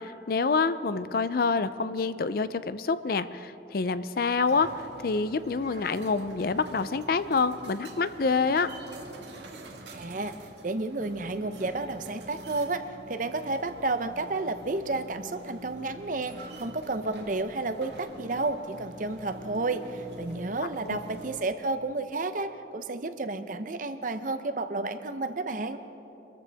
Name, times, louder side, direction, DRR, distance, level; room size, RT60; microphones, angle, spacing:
voice 1, 0.0-4.7 5.0-8.7 20.9-21.0, left 4 dB, 55° left, 13 dB, 0.5 m, -27 dB
sound 1, 4.5-21.4, right 1 dB, 80° right, 1.8 m, -46 dB
voice 2, 9.9-10.3 10.6-12.8 13.1-25.8, right 3 dB, 45° right, 9 dB, 0.7 m, -31 dB
25.0 x 14.0 x 3.5 m, 3.0 s
head